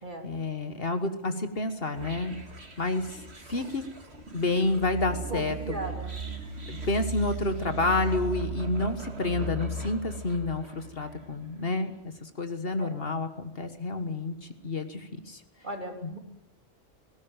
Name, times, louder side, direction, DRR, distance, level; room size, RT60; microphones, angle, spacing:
voice 1, 0.2-2.4 2.8-3.8 4.3-5.6 6.7-11.9 12.2-15.4 16.0-16.2, left 2 dB, 50° left, 9 dB, 1.7 m, -29 dB
sound 1, 1.9-11.2, right 3 dB, 60° right, 2.6 m, -37 dB
voice 2, 5.3-6.1 12.8-13.0 15.6-16.2, right 2 dB, 40° right, 4 dB, 3.2 m, -37 dB
19.5 x 17.5 x 9.1 m, 0.86 s
omnidirectional pair, 1.2 m